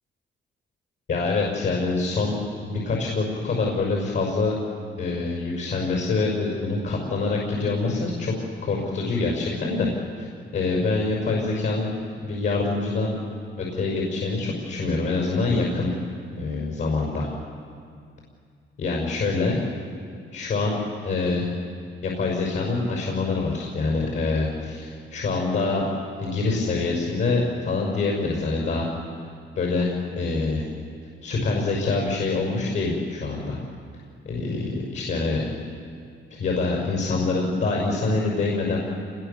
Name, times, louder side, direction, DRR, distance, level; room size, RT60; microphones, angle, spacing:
voice 1, 1.1-2.4 2.7-4.5 5.0-8.3 8.6-9.9 10.2-10.3 10.5-13.2 13.6-15.9 16.4-17.3 18.8-19.6 20.3-20.7 21.0-21.5 22.0-25.8 26.2-28.9 29.6-30.7 31.2-33.6 34.3-35.4 36.3-38.8, left 3 dB, 65° left, -1 dB, 6.0 m, -25 dB
28.5 x 22.0 x 7.1 m, 2.2 s
cardioid pair, 100°, 20 cm